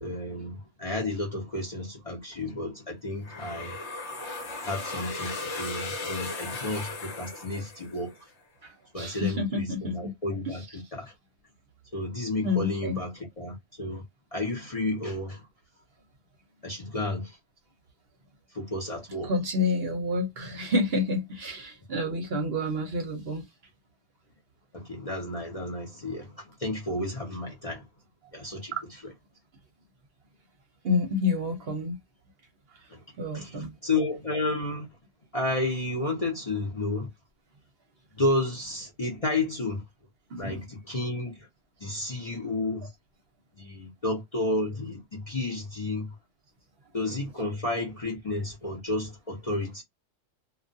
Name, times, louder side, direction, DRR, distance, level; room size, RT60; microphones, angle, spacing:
voice 1, 0.0-3.7 4.6-8.1 8.9-11.1 11.9-14.0 14.3-15.5 16.6-17.4 18.5-19.3 24.7-27.9 28.3-28.7 29.0-29.1 32.9-33.0 33.3-34.9 35.3-37.1 38.2-39.8 40.4-41.4 41.8-42.9 43.6-46.1 46.9-49.8, left 2 dB, 35° left, 0.6 m, -31 dB
sound 1, 3.2-8.2, left 3 dB, 60° left, 1.1 m, -36 dB
voice 2, 8.6-10.1 10.5-10.6 12.4-13.0 19.2-23.4 30.8-32.0 33.2-33.7 40.3-40.6, left 2 dB, 55° right, 0.8 m, -29 dB
2.3 x 2.3 x 2.5 m
omnidirectional pair, 1.4 m